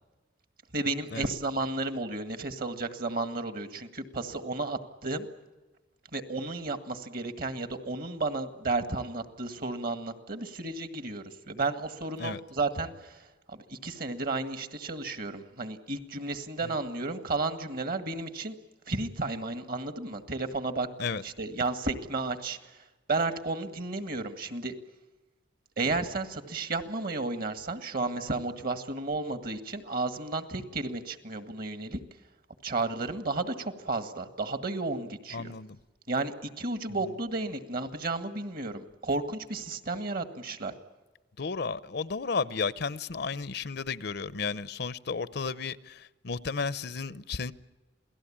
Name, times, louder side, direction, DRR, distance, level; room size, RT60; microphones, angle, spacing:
voice 1, 0.7-5.3 6.1-18.6 18.9-20.9 21.2-24.7 25.8-32.0 32.6-35.5 36.1-40.7, right 3 dB, 50° right, 1.8 m, -33 dB
voice 2, 35.3-35.8 41.4-47.5, left 5 dB, 60° left, 0.7 m, -33 dB
28.0 x 18.0 x 8.7 m
head